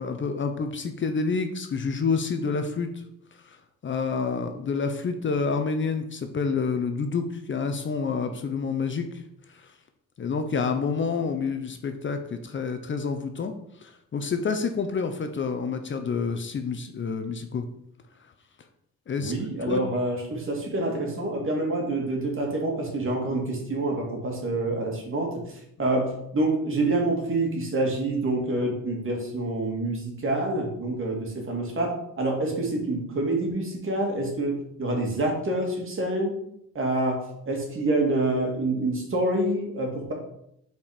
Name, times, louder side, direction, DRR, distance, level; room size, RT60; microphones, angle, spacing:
voice 1, 0.0-2.9 3.4-3.6 3.8-9.1 9.5-9.7 10.2-13.5 13.8-17.6 19.1-19.3 19.7-19.8, left 5 dB, 40° left, 7 dB, 0.8 m, -28 dB
voice 2, 19.2-25.4 25.8-36.4 36.7-40.1, right 2 dB, 45° right, 0 dB, 2.3 m, -27 dB
5.5 x 4.5 x 5.0 m, 0.75 s
cardioid pair, 90°, 30 cm